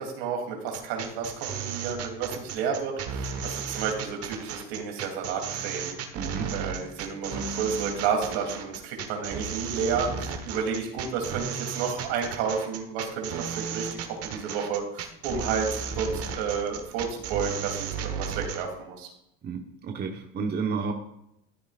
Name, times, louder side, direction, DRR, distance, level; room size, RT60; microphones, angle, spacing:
voice 1, 0.0-5.9 6.5-19.1, right 6 dB, 80° right, 2 dB, 3.1 m, -31 dB
sound 1, 0.7-18.6, right 6 dB, 50° right, 1.4 m, -34 dB
voice 2, 6.1-6.5 19.4-20.9, right 5 dB, 35° right, 3 dB, 1.2 m, -31 dB
13.5 x 9.3 x 2.5 m, 0.81 s
supercardioid pair, 115°, 30 cm